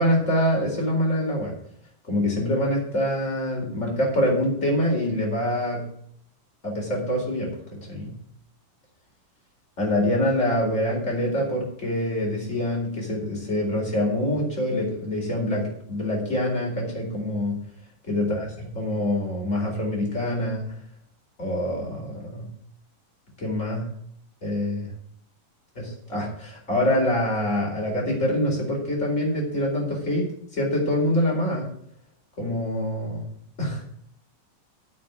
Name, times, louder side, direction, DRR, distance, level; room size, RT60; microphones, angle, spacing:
voice 1, 0.0-1.5 2.1-5.8 6.6-8.1 9.8-17.6 18.0-20.7 21.4-22.5 23.4-23.9 24.4-24.9 25.8-31.7 32.4-33.2 33.6-33.8, left 1 dB, 20° left, -1 dB, 4.5 m, -25 dB
9.5 x 6.7 x 7.9 m, 0.66 s
omnidirectional pair, 3.8 m